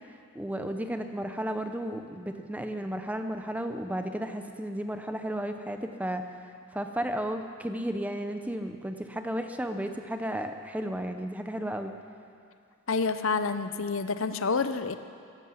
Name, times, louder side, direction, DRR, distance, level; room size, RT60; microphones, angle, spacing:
voice 1, 0.3-6.3 6.7-11.9, right 1 dB, 5° right, 6 dB, 0.6 m, -33 dB
voice 2, 12.9-15.0, left 4 dB, 65° left, 10 dB, 0.7 m, -28 dB
15.0 x 11.5 x 7.8 m, 2.4 s
head